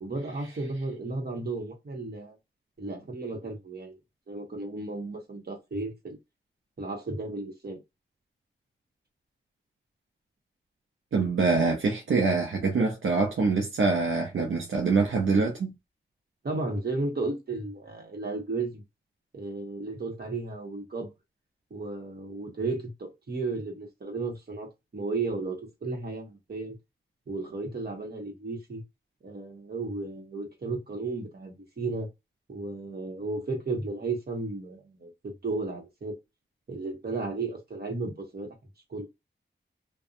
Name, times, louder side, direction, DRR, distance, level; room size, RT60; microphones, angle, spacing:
voice 1, 0.0-2.4 2.8-4.0 4.3-6.2 6.8-7.8 16.4-18.8 19.3-21.1 21.7-26.8 27.3-28.8 29.2-32.1 32.5-36.2 36.7-38.5 38.9-39.1, right 3 dB, 50° right, 1.2 m, -34 dB
voice 2, 11.1-15.7, right 4 dB, 75° right, 0.7 m, -25 dB
2.6 x 2.3 x 2.5 m
cardioid pair, 65°, 20 cm